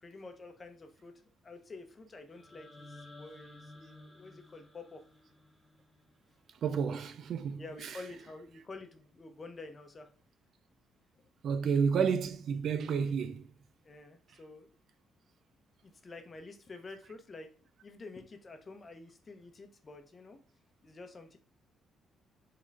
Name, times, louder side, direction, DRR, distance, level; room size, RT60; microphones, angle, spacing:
voice 1, 0.0-1.1 1.4-5.0 7.6-10.1 11.2-11.3 13.8-14.8 15.8-17.5 17.8-20.4 20.8-21.4, left 3 dB, 35° left, 0.9 m, -49 dB
sound 1, 2.3-6.4, left 2 dB, 10° left, 1.5 m, -54 dB
voice 2, 6.6-7.6 11.4-13.5, right 6 dB, 65° right, 0.4 m, -30 dB
3.8 x 3.7 x 3.3 m
cardioid pair, 90°, 0 cm